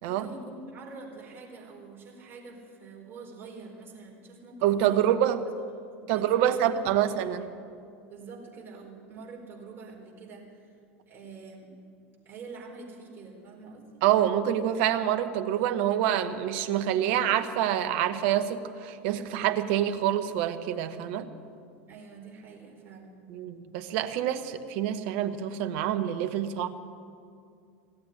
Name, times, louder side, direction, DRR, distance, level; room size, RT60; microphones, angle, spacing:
voice 1, 0.1-5.1 5.6-7.4 8.1-10.7 11.1-11.7 12.2-14.0 21.9-23.1, right 4 dB, 35° right, -1 dB, 4.3 m, -46 dB
voice 2, 4.6-5.4 6.1-7.4 14.0-21.3 23.3-26.7, right 11 dB, 60° right, 10 dB, 1.0 m, -26 dB
16.0 x 7.9 x 10.0 m, 2.3 s
hypercardioid pair, 85°, 7 cm